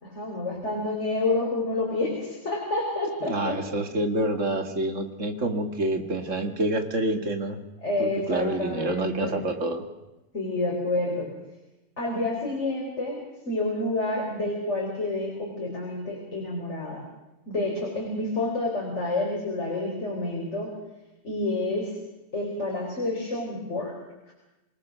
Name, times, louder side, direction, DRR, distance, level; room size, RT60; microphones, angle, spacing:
voice 1, 0.0-3.6 7.8-9.4 10.3-11.3 12.0-13.2 13.5-17.0 17.5-20.7 21.2-21.9 22.3-23.9, left 2 dB, 50° left, -2 dB, 4.8 m, -29 dB
voice 2, 3.2-7.6 8.0-9.8, right 2 dB, 55° right, 7 dB, 2.4 m, -27 dB
27.0 x 18.5 x 6.4 m, 1.0 s
omnidirectional pair, 1.6 m